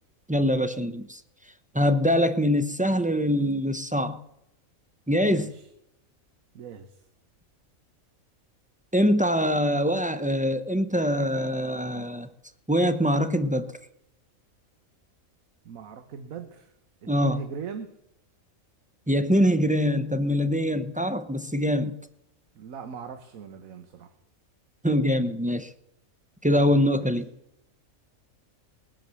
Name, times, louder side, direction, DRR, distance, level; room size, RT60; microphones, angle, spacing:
voice 1, 0.3-1.2 1.7-4.2 5.1-5.5 8.9-12.3 12.7-13.7 17.1-17.4 19.1-22.0 24.8-25.7 26.4-27.3, equal, 10° right, 10 dB, 0.3 m, -23 dB
voice 2, 5.2-5.7 6.5-7.0 15.6-16.7 17.0-17.9 22.5-24.1 26.9-27.1, right 7 dB, 75° right, 8 dB, 1.4 m, -39 dB
20.5 x 7.8 x 6.9 m, 0.84 s
omnidirectional pair, 1.5 m